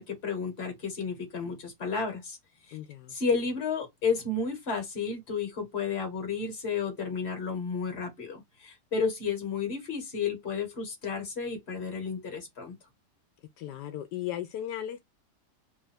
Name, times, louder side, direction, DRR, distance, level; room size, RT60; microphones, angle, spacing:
voice 1, 0.0-2.4 2.7-2.8 3.1-12.7, left 5 dB, 40° left, 1.5 m, -32 dB
voice 2, 2.7-3.2 13.6-15.0, left 11 dB, 80° left, 1.2 m, -36 dB
3.2 x 2.5 x 4.2 m
omnidirectional pair, 1.8 m